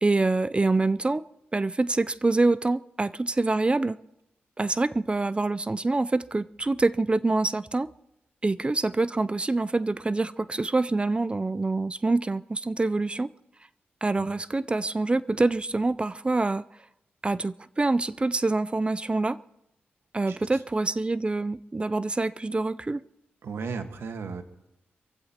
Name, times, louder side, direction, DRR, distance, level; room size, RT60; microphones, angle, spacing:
voice 1, 0.0-1.3 1.5-4.0 4.6-7.9 8.4-13.3 14.0-16.6 17.2-19.4 20.1-23.0, right 2 dB, 25° right, 0.5 m, -26 dB
voice 2, 20.3-20.6 23.4-24.4, right 5 dB, 80° right, 1.5 m, -35 dB
26.5 x 15.5 x 2.9 m
cardioid pair, 65°, 4 cm